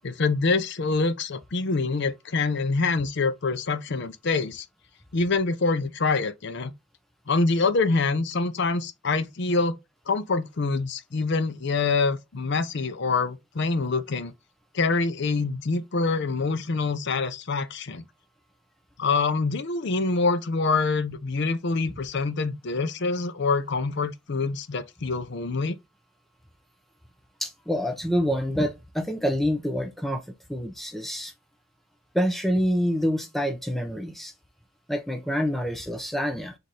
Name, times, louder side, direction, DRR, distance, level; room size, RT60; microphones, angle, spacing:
voice 1, 0.0-4.6 5.1-6.7 7.3-9.8 10.1-14.3 14.7-18.0 19.0-25.7, left 3 dB, 55° left, 0.6 m, -25 dB
voice 2, 27.4-30.2 30.5-31.3 32.1-34.3 34.9-36.5, equal, ahead, 0.7 m, -27 dB
4.2 x 2.6 x 4.7 m
head